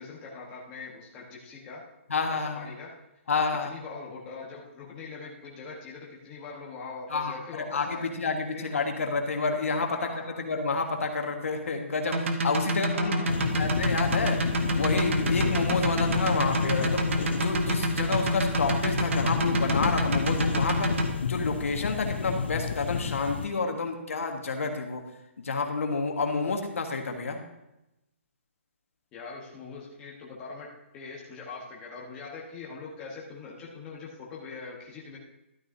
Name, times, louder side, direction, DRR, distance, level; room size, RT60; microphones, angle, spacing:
voice 1, 0.0-1.8 2.3-2.9 3.6-8.1 8.5-8.7 9.8-10.4 12.7-13.3 29.1-30.7 30.9-35.2, left 4 dB, 15° left, -4 dB, 1.2 m, -42 dB
voice 2, 2.1-2.7 3.3-3.7 7.1-10.1 10.4-14.5 14.7-17.0 17.3-25.0 25.4-27.4, left 4 dB, 85° left, 3 dB, 1.5 m, -29 dB
sound 1, 12.1-21.1, equal, 65° right, 1.1 m, -27 dB
sound 2, 13.3-23.5, left 6 dB, 50° left, 0.5 m, -31 dB
12.5 x 9.4 x 2.7 m, 0.92 s
hypercardioid pair, 175°, 7 cm